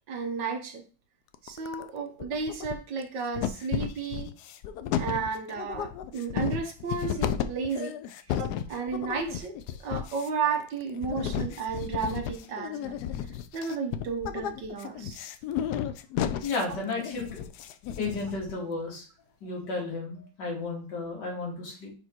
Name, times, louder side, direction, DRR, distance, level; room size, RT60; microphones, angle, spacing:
voice 1, 0.1-0.8 1.4-4.3 5.0-8.0 8.3-13.0 13.5-15.2, right 5 dB, 65° right, 3 dB, 1.5 m, -33 dB
sound 1, 1.3-1.9 2.2-3.0 3.3-18.5, left 9 dB, 80° left, 0.9 m, -33 dB
voice 2, 16.4-17.4 18.0-19.1 19.4-21.9, left 3 dB, 55° left, -2 dB, 2.6 m, -33 dB
5.0 x 4.8 x 4.4 m, 0.36 s
omnidirectional pair, 2.2 m